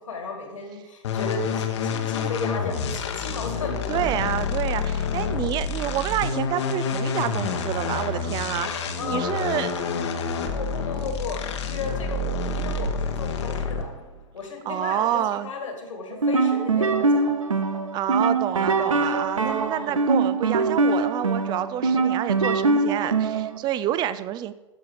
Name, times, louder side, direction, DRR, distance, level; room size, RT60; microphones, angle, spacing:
voice 1, 0.0-4.0 9.0-9.5 10.5-13.9 14.3-17.3 19.3-20.1, left 3 dB, 75° left, 3 dB, 2.3 m, -35 dB
sound 1, 1.0-14.0, left 5 dB, 60° left, 1.1 m, -28 dB
voice 2, 3.9-9.8 14.7-15.5 17.9-24.5, right 12 dB, 25° right, 15 dB, 0.4 m, -28 dB
sound 2, 16.1-23.6, right 3 dB, 85° right, 0.7 m, -23 dB
13.0 x 4.8 x 4.9 m, 1.1 s
figure-of-eight pair, 105°, 16 cm